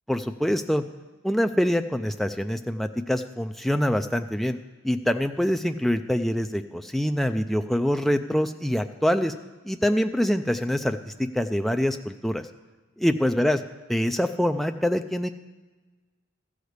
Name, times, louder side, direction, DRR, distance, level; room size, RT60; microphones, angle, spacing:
voice 1, 0.1-0.8 1.2-4.6 4.8-9.3 9.7-12.4 13.0-15.3, equal, ahead, 6 dB, 0.3 m, -25 dB
13.5 x 5.0 x 8.0 m, 1.3 s
head